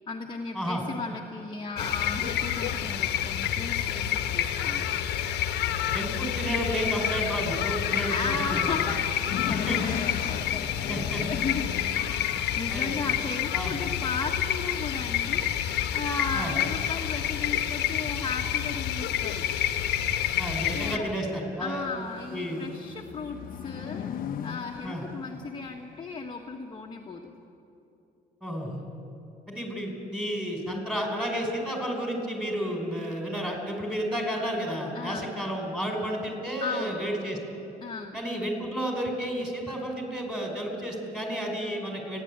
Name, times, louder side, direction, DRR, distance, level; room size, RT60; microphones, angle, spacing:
voice 1, 0.1-4.9 8.1-12.2 12.6-19.5 20.7-21.1 21.6-24.1 24.4-27.3 34.9-35.3 36.6-37.0 37.8-38.1, left 4 dB, 25° left, 0 dB, 1.4 m, -35 dB
sound 1, 1.8-21.0, left 10 dB, 80° left, 1.2 m, -29 dB
voice 2, 5.8-8.9 9.5-9.8 10.9-11.2 12.7-13.0 13.5-13.7 16.3-16.5 20.4-21.9 22.3-22.6 24.8-25.0 28.4-28.8 29.5-37.4 38.1-42.2, equal, 5° right, 1 dB, 5.2 m, -31 dB
sound 2, 8.3-14.4 15.4-15.8 16.2-16.3 16.6-16.7 21.7-26.1, left 9 dB, 55° left, 0.9 m, -39 dB
29.0 x 11.0 x 8.8 m, 2.8 s
cardioid pair, 110°, 17 cm